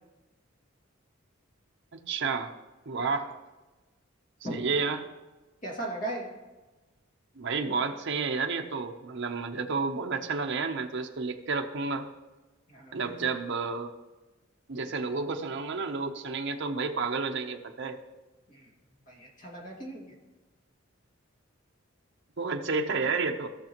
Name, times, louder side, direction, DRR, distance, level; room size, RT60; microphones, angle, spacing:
voice 1, 1.9-2.5 2.9-3.3 4.5-5.0 7.4-12.0 12.9-13.9 14.7-18.0 22.4-23.5, right 4 dB, 65° right, 4 dB, 0.8 m, -31 dB
voice 2, 5.6-6.3 12.7-13.0 18.5-18.7 19.1-20.1, right 1 dB, 40° left, -3 dB, 2.2 m, -37 dB
16.0 x 6.5 x 3.0 m, 1.2 s
head